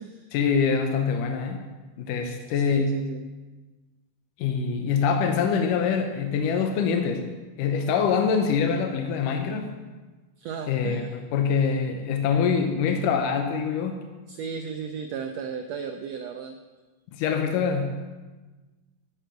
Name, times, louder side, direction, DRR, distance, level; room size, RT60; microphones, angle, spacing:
voice 1, 0.3-1.6 2.0-3.0 4.4-7.3 7.6-9.7 10.7-14.1 17.1-18.0, left 6 dB, 85° left, 5 dB, 2.4 m, -24 dB
voice 2, 2.5-3.3 10.4-11.2 14.3-16.6, right 6 dB, 85° right, 5 dB, 1.5 m, -35 dB
11.0 x 9.0 x 5.2 m, 1.2 s
omnidirectional pair, 3.7 m